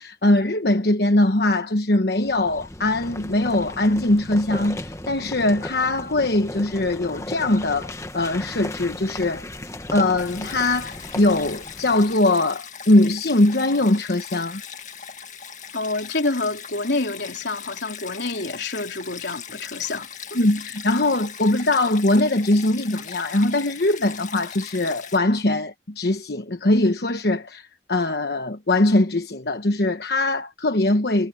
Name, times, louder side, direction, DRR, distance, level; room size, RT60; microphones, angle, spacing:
voice 1, 0.0-9.4 9.9-14.6 20.3-31.3, left 2 dB, 70° left, 1.1 m, -21 dB
sound 1, 2.2-12.2, left 1 dB, 15° left, 1.3 m, -36 dB
Stream, 10.2-25.2, left 7 dB, 45° left, 2.1 m, -39 dB
voice 2, 15.7-20.4, left 3 dB, 85° left, 3.6 m, -28 dB
head